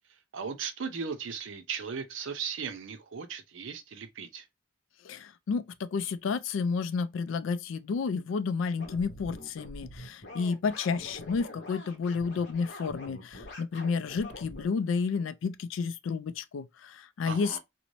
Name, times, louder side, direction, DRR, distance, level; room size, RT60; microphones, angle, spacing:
voice 1, 0.3-4.4 17.2-17.6, right 6 dB, 65° right, 0.5 m, -37 dB
voice 2, 5.0-17.6, left 5 dB, 70° left, 0.3 m, -31 dB
sound 1, 8.8-14.7, left 1 dB, 55° left, 0.9 m, -45 dB
2.5 x 2.1 x 3.0 m
head